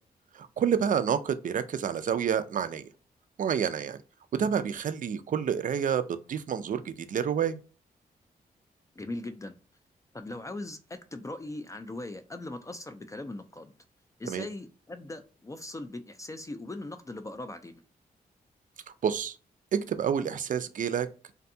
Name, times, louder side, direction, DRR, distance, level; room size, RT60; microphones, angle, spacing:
voice 1, 0.3-2.9 3.4-4.0 4.3-7.6 14.3-14.5 19.0-19.4 19.7-21.1, right 8 dB, 55° right, 0.4 m, -28 dB
voice 2, 9.0-9.6 10.1-13.7 14.2-17.8, left 2 dB, 20° left, 0.4 m, -40 dB
2.6 x 2.2 x 2.6 m
cardioid pair, 65°, 16 cm